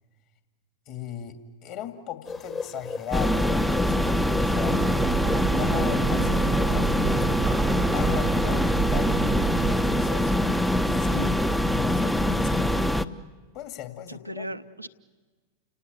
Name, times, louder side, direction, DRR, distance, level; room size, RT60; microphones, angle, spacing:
voice 1, 0.9-4.8 5.5-7.2 7.9-9.2 9.7-10.3 10.9-11.3 11.6-12.7 13.5-14.5, left 11 dB, 45° left, 6 dB, 2.5 m, -37 dB
sound 1, 2.3-10.6, left 4 dB, 20° left, 1.3 m, -38 dB
sound 2, 3.1-13.1, left 1 dB, 5° left, 0.7 m, -24 dB
Breathing / Train, 4.5-10.1, right 9 dB, 30° right, 0.8 m, -30 dB
voice 2, 14.1-14.9, right 1 dB, 90° right, 7 dB, 0.8 m, -36 dB
30.0 x 18.5 x 8.2 m, 1.4 s
figure-of-eight pair, 90°, 0 cm